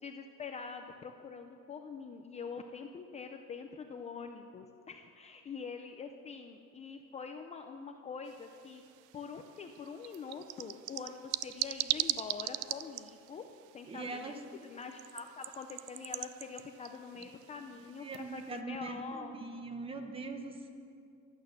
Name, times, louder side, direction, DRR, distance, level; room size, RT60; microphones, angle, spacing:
voice 1, 0.0-8.8 9.1-13.4 13.7-19.3, left 5 dB, 20° left, 5 dB, 0.5 m, -45 dB
sound 1, 8.3-18.6, right 16 dB, 90° right, 0.5 m, -41 dB
voice 2, 13.9-14.4 18.0-20.7, right 3 dB, 20° right, 5 dB, 1.0 m, -41 dB
15.0 x 12.0 x 6.6 m, 2.5 s
cardioid pair, 175°, 30 cm